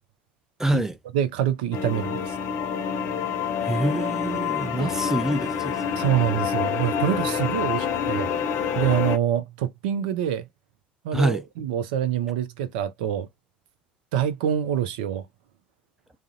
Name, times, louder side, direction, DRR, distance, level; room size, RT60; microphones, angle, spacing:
voice 1, 0.6-1.0 3.6-5.9 11.1-11.4, right 2 dB, 10° right, 0.4 m, -26 dB
voice 2, 1.1-2.4 4.8-4.9 6.0-8.3 8.7-10.5 11.0-13.3 14.1-15.3, right 10 dB, 70° right, 0.4 m, -25 dB
sound 1, 1.7-9.2, left 7 dB, 55° left, 0.6 m, -27 dB
2.4 x 2.0 x 2.6 m
figure-of-eight pair, 60°, 5 cm